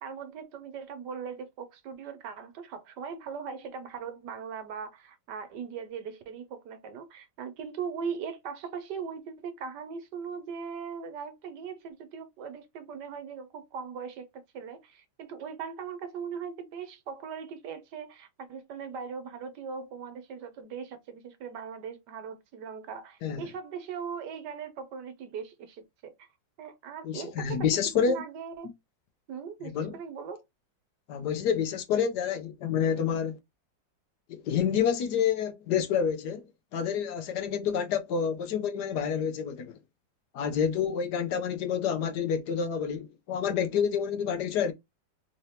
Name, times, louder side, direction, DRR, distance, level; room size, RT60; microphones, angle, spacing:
voice 1, 0.0-26.3 26.6-28.7 29.3-30.4, right 6 dB, 75° right, 1.3 m, -39 dB
voice 2, 27.0-28.2 29.7-30.0 31.1-33.4 34.3-36.4 36.7-39.8 40.3-44.7, left 7 dB, 70° left, 1.2 m, -28 dB
3.8 x 2.8 x 3.2 m
omnidirectional pair, 2.0 m